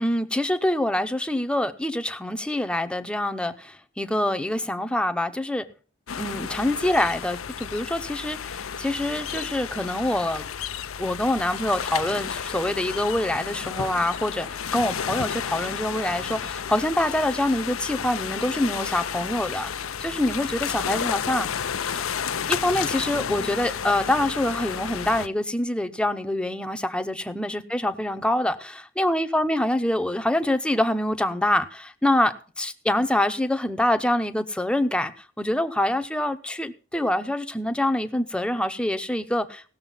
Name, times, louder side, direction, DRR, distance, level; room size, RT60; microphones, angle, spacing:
voice 1, 0.0-5.6 6.1-10.4 11.0-19.7 20.0-21.5 22.0-22.1 22.5-35.1 35.4-39.7, left 1 dB, 5° left, 0.7 m, -25 dB
sound 1, 6.1-25.3, left 7 dB, 80° left, 0.6 m, -32 dB
17.0 x 6.7 x 5.5 m
head